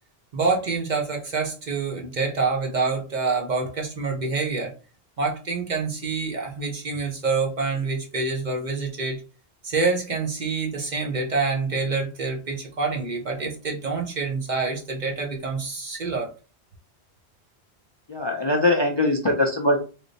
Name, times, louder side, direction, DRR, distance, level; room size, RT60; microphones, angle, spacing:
voice 1, 0.3-4.7 5.2-9.2 9.6-16.3, right 4 dB, 50° right, 1 dB, 0.7 m, -26 dB
voice 2, 18.1-19.8, left 2 dB, 35° left, 0 dB, 0.4 m, -21 dB
3.3 x 2.0 x 3.9 m, 0.34 s
omnidirectional pair, 1.1 m